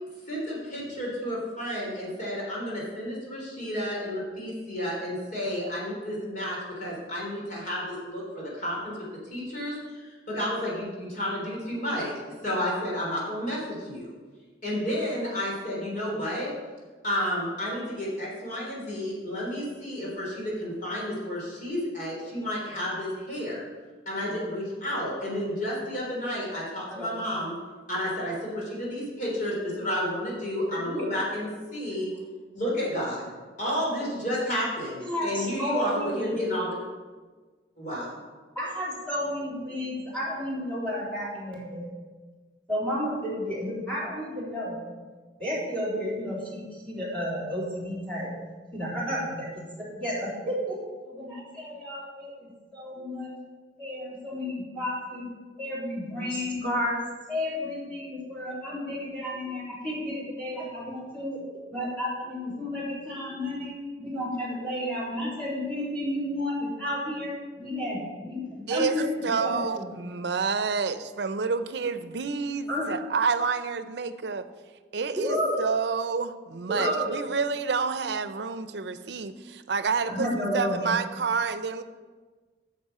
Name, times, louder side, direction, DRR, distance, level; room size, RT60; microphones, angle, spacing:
voice 1, 0.3-9.0 9.3-12.1 12.4-14.1 14.6-16.5 17.0-23.6 24.1-27.5 27.9-32.1 32.5-36.8 37.8-38.1, equal, 50° left, -4 dB, 3.6 m, -31 dB
voice 2, 30.7-31.1 35.0-36.4 38.6-41.9 42.7-44.9 45.4-48.3 48.7-49.5 49.8-50.8 51.1-53.3 53.8-55.3 55.6-57.0 57.3-61.4 61.7-69.8 72.7-72.9 75.2-75.5 76.7-77.1 80.1-80.9, left 1 dB, 5° left, -7 dB, 3.6 m, -31 dB
voice 3, 68.7-74.5 74.9-81.8, right 5 dB, 70° right, 11 dB, 0.6 m, -29 dB
9.6 x 6.8 x 5.6 m, 1.4 s
head